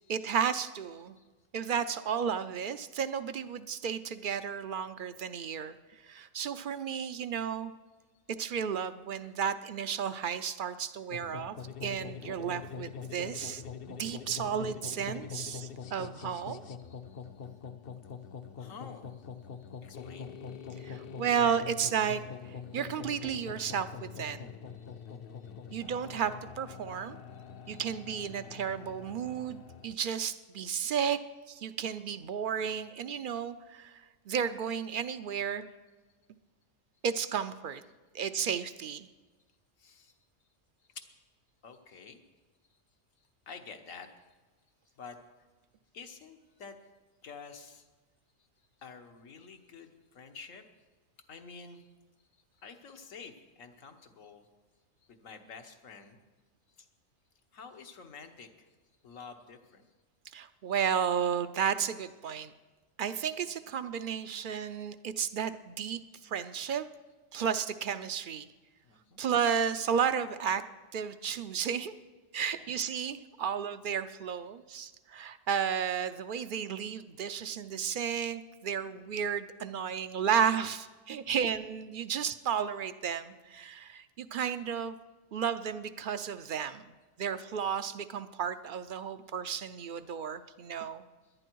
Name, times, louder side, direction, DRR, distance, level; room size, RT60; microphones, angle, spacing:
voice 1, 0.1-1.2 1.5-5.8 6.0-7.7 8.3-11.6 11.8-13.6 13.9-16.6 20.8-22.2 22.7-24.5 25.7-27.2 27.7-31.2 31.5-34.0 34.3-35.7 37.0-37.8 38.1-39.1 60.3-62.5 63.0-66.9 67.3-68.5 69.2-70.6 70.9-71.9 72.3-85.0 85.3-91.0, right 7 dB, 55° right, 12 dB, 0.6 m, -33 dB
sound 1, 11.1-29.9, left 6 dB, 55° left, 0.8 m, -44 dB
voice 2, 16.8-17.3 18.6-19.2 19.6-21.1 24.8-25.1 25.4-25.8 27.0-27.1 27.3-27.9 28.3-28.4 39.8-40.1 40.9-41.1 41.6-42.2 42.7-42.8 43.5-44.1 45.0-45.2 45.9-46.8 47.2-47.9 48.8-50.6 51.3-51.9 52.6-54.5 55.1-56.2 56.8-56.9 57.5-58.7 59.0-59.9 68.8-69.2 72.5-72.8 81.3-81.4 85.3-85.4 91.2-91.3, left 5 dB, 80° left, 6 dB, 1.5 m, -50 dB
17.5 x 11.5 x 4.6 m, 1.3 s
omnidirectional pair, 1.3 m